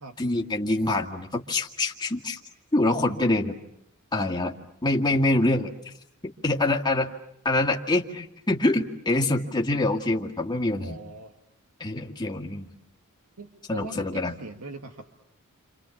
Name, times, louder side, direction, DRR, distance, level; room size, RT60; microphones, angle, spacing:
voice 1, 0.2-2.4 2.7-3.6 4.1-4.6 4.8-5.9 6.2-7.1 7.4-11.0 11.8-12.7 13.7-14.4, left 2 dB, 20° left, 1 dB, 2.0 m, -25 dB
voice 2, 10.7-11.3 13.4-15.0, right 2 dB, 85° right, 4 dB, 2.0 m, -41 dB
30.0 x 26.5 x 7.2 m, 0.76 s
head